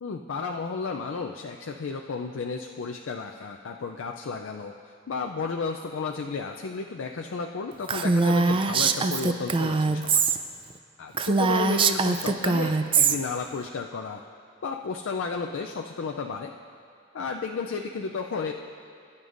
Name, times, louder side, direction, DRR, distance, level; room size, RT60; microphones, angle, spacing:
voice 1, 0.0-4.7 5.1-10.2 11.0-14.2 14.6-16.5 17.1-18.5, left 4 dB, 75° left, 3 dB, 0.4 m, -33 dB
Female speech woman speaking, 7.9-10.4 10.7-10.8 11.1-13.2, right 4 dB, 25° right, 0.4 m, -23 dB
19.5 x 9.4 x 2.5 m, 2.3 s
head